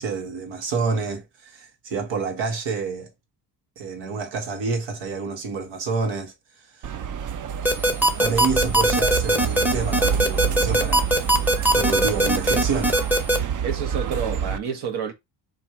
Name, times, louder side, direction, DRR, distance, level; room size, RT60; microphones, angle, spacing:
voice 1, 0.0-3.1 3.8-7.0 8.2-11.1 11.7-13.0, right 4 dB, 80° right, 1.2 m, -28 dB
sound 1, 6.8-14.6, right 8 dB, 45° right, 0.5 m, -27 dB
sound 2, 7.6-13.4, right 1 dB, 5° right, 0.9 m, -19 dB
voice 2, 13.6-15.1, right 7 dB, 60° right, 1.3 m, -29 dB
4.3 x 2.6 x 4.4 m
cardioid pair, 105°, 44 cm